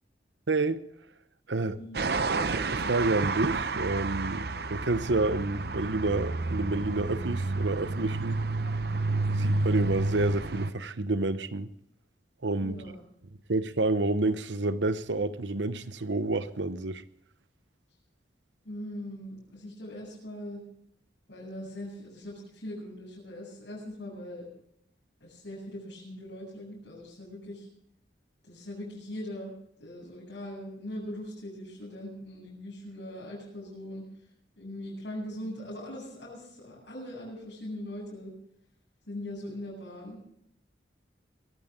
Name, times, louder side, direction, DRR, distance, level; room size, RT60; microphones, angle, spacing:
voice 1, 0.5-0.8 1.5-1.8 2.4-8.4 9.4-11.7 12.4-12.7 13.5-17.0, right 2 dB, 85° right, 1.0 m, -29 dB
voice 2, 1.6-2.0 12.6-13.0 18.6-20.6 21.3-24.5 25.2-27.7 28.4-29.5 29.8-34.1 34.6-38.3 39.1-40.2, left 1 dB, 75° left, 7.7 m, -41 dB
sound 1, 1.9-10.7, right 3 dB, 60° right, 0.7 m, -30 dB
21.5 x 14.5 x 3.8 m
head